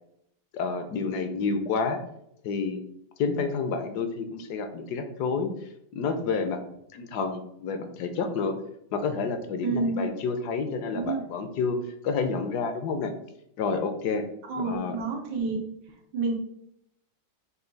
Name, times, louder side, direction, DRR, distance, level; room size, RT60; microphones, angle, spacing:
voice 1, 0.5-2.0 2.4-2.8 3.2-5.5 5.9-6.6 6.9-8.5 8.9-11.8 12.0-13.1 13.6-14.2 14.6-15.0, left 5 dB, 70° left, 7 dB, 1.1 m, -29 dB
voice 2, 9.6-10.1 10.9-11.2 14.4-15.6 16.1-16.4, right 3 dB, 90° right, 0 dB, 1.6 m, -29 dB
5.5 x 2.3 x 3.9 m, 0.76 s
omnidirectional pair, 1.9 m